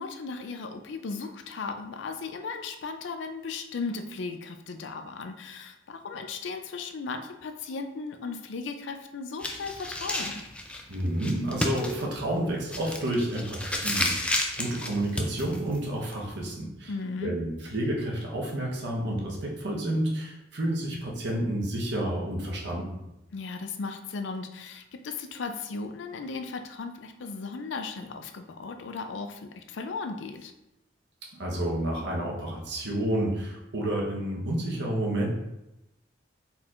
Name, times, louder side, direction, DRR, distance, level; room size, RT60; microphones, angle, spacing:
voice 1, 0.0-10.4 16.9-17.4 23.3-30.5, left 4 dB, 70° left, 6 dB, 0.4 m, -36 dB
sound 1, 9.4-16.5, left 1 dB, 5° left, 0.4 m, -32 dB
voice 2, 10.9-16.9 17.2-22.9 31.3-35.3, right 1 dB, 65° right, -2 dB, 1.0 m, -30 dB
4.4 x 4.1 x 2.5 m, 0.92 s
head